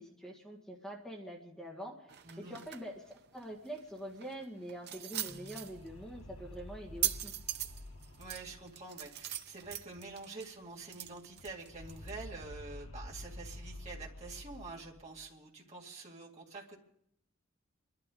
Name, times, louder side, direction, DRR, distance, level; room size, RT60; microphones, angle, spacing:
voice 1, 0.0-2.0 2.4-7.3, right 1 dB, 5° left, -4 dB, 1.8 m, -45 dB
sound 1, 2.1-12.3, right 12 dB, 50° right, 0.7 m, -42 dB
voice 2, 2.2-2.6 8.2-16.8, right 3 dB, 30° right, -3 dB, 2.4 m, -47 dB
sound 2, 5.0-10.3 10.6-10.7 10.9-15.3, left 1 dB, 90° left, 1.1 m, -50 dB
28.5 x 12.0 x 3.9 m, 0.72 s
head